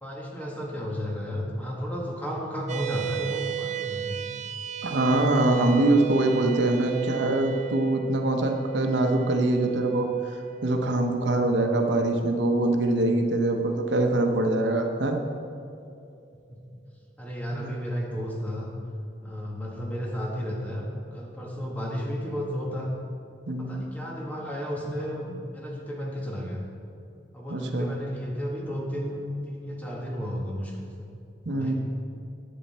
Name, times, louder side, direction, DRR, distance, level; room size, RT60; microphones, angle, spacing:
voice 1, 0.0-4.2 16.5-16.6 17.2-18.7 19.2-22.9 23.6-26.6 27.3-31.1 31.5-31.7, equal, 10° left, -2 dB, 1.6 m, -33 dB
sound 1, 2.7-15.3, right 13 dB, 40° right, 0.4 m, -36 dB
voice 2, 4.8-10.4 10.6-15.2 17.5-17.7 23.5-23.8 27.5-27.9 31.4-31.7, right 2 dB, 80° right, 3 dB, 0.9 m, -24 dB
11.0 x 8.5 x 4.3 m, 2.5 s
head